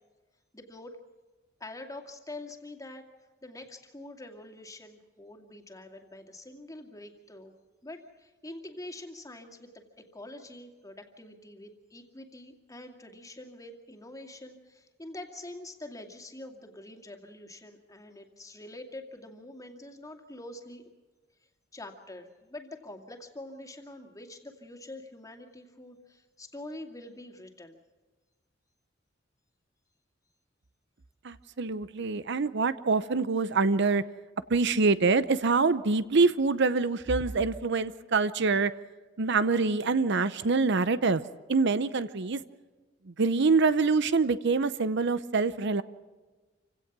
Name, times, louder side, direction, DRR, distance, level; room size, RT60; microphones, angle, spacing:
voice 1, 0.5-0.9 1.6-3.1 3.4-7.5 7.8-20.9 21.7-27.8, left 1 dB, 20° left, 4 dB, 2.3 m, -45 dB
voice 2, 31.2-34.0 34.5-38.7 39.2-41.2 41.5-42.4 43.1-45.8, right 4 dB, 65° right, 14 dB, 0.7 m, -25 dB
27.5 x 17.0 x 6.1 m, 1.3 s
head